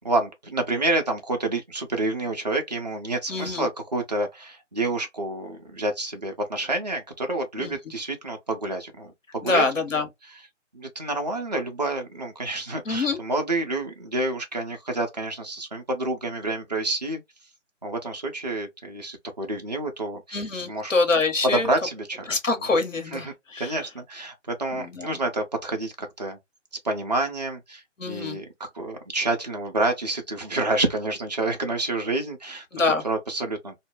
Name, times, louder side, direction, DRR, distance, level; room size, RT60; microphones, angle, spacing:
voice 1, 0.0-9.6 10.7-17.2 17.8-20.9 21.4-22.4 23.1-26.4 26.8-32.7 33.0-33.7, right 2 dB, 35° right, 0.4 m, -28 dB
voice 2, 3.3-3.7 7.6-7.8 9.4-10.1 12.9-13.2 20.3-21.7 22.3-23.8 24.7-25.2 28.0-28.4 32.7-33.0, left 3 dB, 80° left, 1.0 m, -25 dB
2.2 x 2.0 x 3.0 m
figure-of-eight pair, 145°, 38 cm